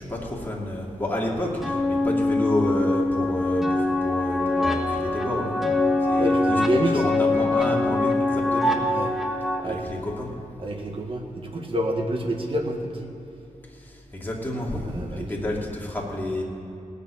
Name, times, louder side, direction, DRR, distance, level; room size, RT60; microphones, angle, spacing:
voice 1, 0.0-5.6 6.1-8.7 9.6-10.3 13.7-16.4, left 1 dB, 15° left, -3 dB, 2.5 m, -30 dB
sound 1, 1.6-9.6, left 2 dB, 5° right, 1.5 m, -23 dB
voice 2, 6.2-7.0 8.9-9.1 9.6-9.9 10.6-13.1 14.8-15.3, right 1 dB, 45° right, 2 dB, 1.7 m, -28 dB
18.0 x 6.8 x 8.6 m, 2.9 s
wide cardioid pair, 125°, 13 cm